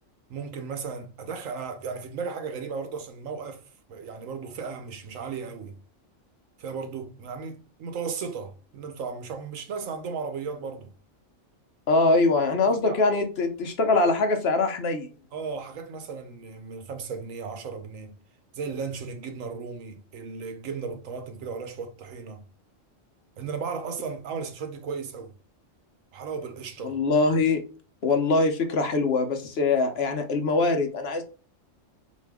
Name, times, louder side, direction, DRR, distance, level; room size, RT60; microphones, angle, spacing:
voice 1, 0.3-3.6 3.9-5.8 6.6-10.9 12.5-13.0 15.3-18.1 18.5-22.4 23.4-25.3 26.1-27.0, right 5 dB, 90° right, 1.2 m, -35 dB
voice 2, 11.9-15.1 26.8-27.6 28.0-31.2, left 3 dB, 60° left, 0.9 m, -23 dB
4.0 x 2.7 x 3.4 m
omnidirectional pair, 1.3 m